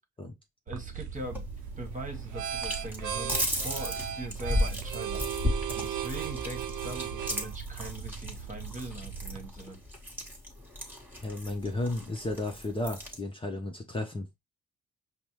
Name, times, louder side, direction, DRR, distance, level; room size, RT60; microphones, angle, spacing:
voice 1, 0.7-1.4 1.8-5.2 5.7-9.8, right 1 dB, 25° right, 1.3 m, -41 dB
sound 1, 0.7-9.5, right 8 dB, 75° right, 0.6 m, -37 dB
sound 2, 1.1-13.2, left 1 dB, 5° right, 1.3 m, -35 dB
voice 2, 11.2-14.4, left 2 dB, 15° left, 0.7 m, -33 dB
5.2 x 2.1 x 3.0 m
cardioid pair, 90°, 30 cm